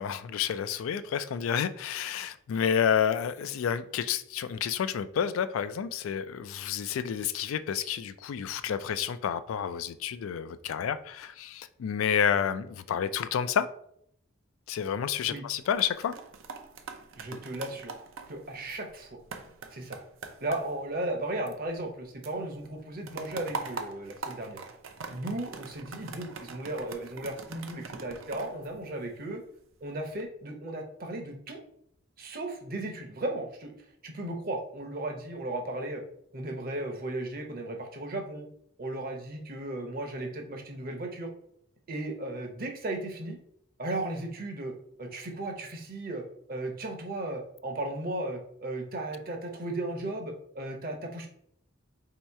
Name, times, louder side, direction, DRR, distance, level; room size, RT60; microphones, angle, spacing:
voice 1, 0.0-13.7 14.7-16.1 17.3-17.4, left 8 dB, 85° left, 0.3 m, -30 dB
sound 1, 15.5-22.0 22.2-29.4 29.9-30.2, right 4 dB, 75° right, 0.5 m, -43 dB
voice 2, 17.2-17.9 18.3-19.2 19.7-20.0 20.4-24.6 25.1-29.4 29.8-31.6 32.2-36.0 36.3-38.5 38.8-41.3 41.9-43.4 43.8-46.2 46.5-51.3, right 1 dB, 45° right, 0.8 m, -35 dB
3.1 x 2.9 x 4.6 m
head